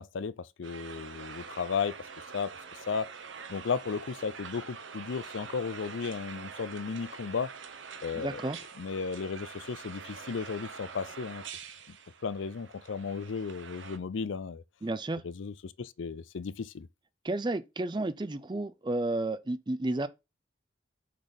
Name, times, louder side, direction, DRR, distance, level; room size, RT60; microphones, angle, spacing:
voice 1, 0.0-2.0 2.3-2.5 2.9-3.1 3.5-7.5 8.0-8.4 8.8-11.4 11.9-12.0 12.2-14.6 15.2-16.9, left 5 dB, 85° left, 0.5 m, -34 dB
sound 1, 0.6-14.0, right 6 dB, 80° right, 1.0 m, -45 dB
voice 2, 8.1-8.6 14.8-15.2 17.2-20.1, right 2 dB, 25° right, 0.5 m, -32 dB
6.5 x 4.0 x 5.2 m
head